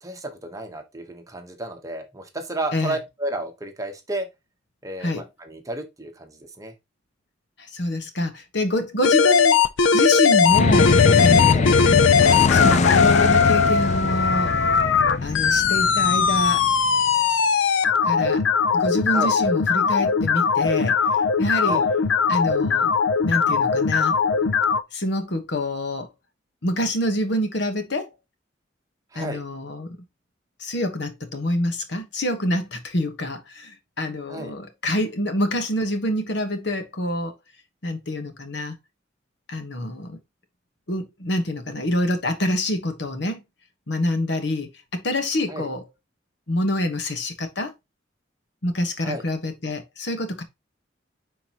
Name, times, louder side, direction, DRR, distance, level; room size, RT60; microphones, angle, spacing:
voice 1, 0.0-4.3 4.8-6.7 11.5-11.7 19.1-19.3 21.6-21.9 29.1-29.4 34.3-34.5 45.5-45.7 49.0-49.2, right 2 dB, 20° right, 1.1 m, -32 dB
voice 2, 7.7-9.6 9.9-12.0 12.5-14.5 15.2-16.6 18.0-18.4 18.7-21.0 21.4-21.8 22.3-22.9 23.2-24.2 24.9-26.1 26.6-28.1 29.1-30.0 30.6-37.3 37.8-38.8 39.5-40.2 40.9-43.4 43.9-45.8 46.5-47.7 48.6-50.4, left 1 dB, 65° left, 1.3 m, -26 dB
sound 1, 9.0-24.8, left 6 dB, 90° left, 0.6 m, -19 dB
sound 2, 10.5-17.1, left 4 dB, 40° left, 0.3 m, -22 dB
9.7 x 4.1 x 3.0 m
head